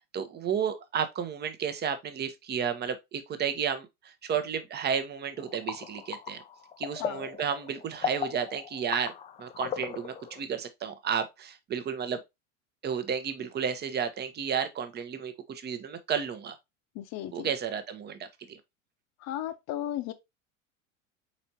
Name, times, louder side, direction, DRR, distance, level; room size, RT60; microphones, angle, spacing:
voice 1, 0.1-6.4 6.8-9.1 9.4-12.2 12.8-16.6 17.3-18.6, right 7 dB, 25° right, 0.8 m, -32 dB
sound 1, 5.4-10.4, left 8 dB, 20° left, 0.4 m, -37 dB
voice 2, 16.9-17.5 19.2-20.1, left 12 dB, 40° left, 0.8 m, -35 dB
4.4 x 4.2 x 2.8 m
hypercardioid pair, 85°, 40 cm